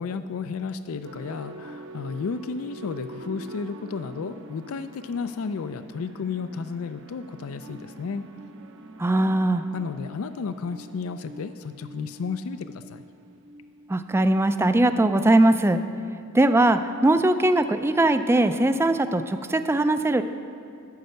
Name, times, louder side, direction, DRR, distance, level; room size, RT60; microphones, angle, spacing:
voice 1, 0.0-8.2 9.7-13.0, left 5 dB, 70° left, 11 dB, 0.4 m, -33 dB
sound 1, 1.0-14.4, right 1 dB, 65° right, 0.8 m, -44 dB
voice 2, 9.0-9.6 13.9-15.8 16.3-20.2, right 1 dB, 10° right, 10 dB, 0.3 m, -20 dB
9.5 x 6.5 x 7.9 m, 2.7 s
head